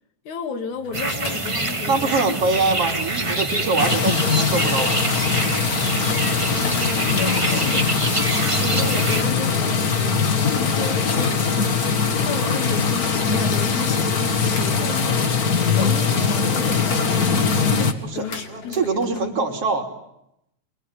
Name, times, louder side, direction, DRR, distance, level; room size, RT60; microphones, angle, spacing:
voice 1, 0.3-2.3 6.5-11.7 12.1-15.2 15.7-19.0, left 6 dB, 85° left, 6 dB, 3.8 m, -32 dB
sound 1, 0.7-19.3, left 3 dB, 55° left, 4.2 m, -39 dB
sound 2, 0.9-9.2, right 2 dB, 15° right, 1.2 m, -26 dB
voice 2, 1.9-5.1 18.0-19.9, right 3 dB, 55° right, 3 dB, 4.1 m, -24 dB
sound 3, 3.8-17.9, left 5 dB, 35° left, 1.9 m, -21 dB
26.0 x 23.5 x 9.8 m, 0.81 s
omnidirectional pair, 3.3 m